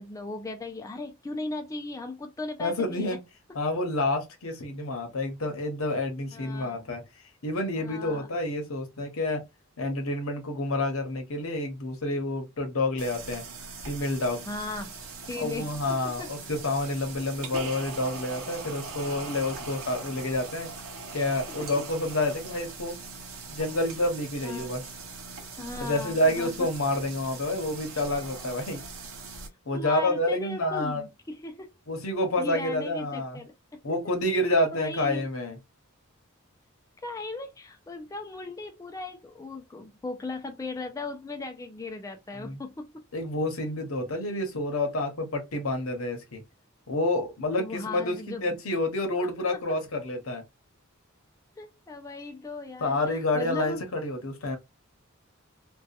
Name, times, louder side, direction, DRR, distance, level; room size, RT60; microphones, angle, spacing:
voice 1, 0.0-3.2 6.3-6.9 7.8-8.3 14.5-14.9 15.3-16.3 21.6-21.8 24.4-24.8 25.6-26.5 29.7-31.7 32.4-33.8 34.8-35.3 37.0-43.0 47.5-48.6 49.1-49.3 51.6-53.8, left 2 dB, 15° left, 0.3 m, -37 dB
voice 2, 2.6-3.2 3.5-7.0 7.4-9.4 9.8-13.4 13.8-14.4 15.3-20.7 21.1-23.0 23.5-24.8 25.8-28.8 29.7-31.0 31.9-33.4 33.8-35.6 42.4-42.6 43.1-46.4 46.9-50.4 52.8-54.6, left 1 dB, 80° left, 0.9 m, -28 dB
sound 1, 13.0-29.5, right 4 dB, 80° right, 0.8 m, -41 dB
2.7 x 2.3 x 2.3 m
head